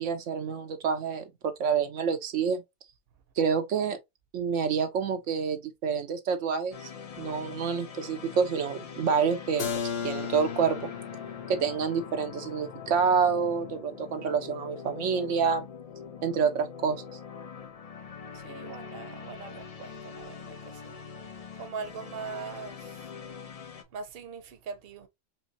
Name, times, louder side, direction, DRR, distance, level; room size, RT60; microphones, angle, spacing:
voice 1, 0.0-2.6 3.4-4.0 4.3-6.8 7.2-10.9 11.5-15.7 16.2-17.0, right 6 dB, 85° right, 1.1 m, -28 dB
sound 1, 6.7-23.8, left 6 dB, 45° left, 0.5 m, -43 dB
Keyboard (musical), 9.6-15.2, left 7 dB, 60° left, 0.9 m, -38 dB
voice 2, 18.3-20.9 21.6-23.1 23.9-25.1, right 5 dB, 55° right, 0.9 m, -41 dB
4.5 x 3.0 x 2.7 m
omnidirectional pair, 1.2 m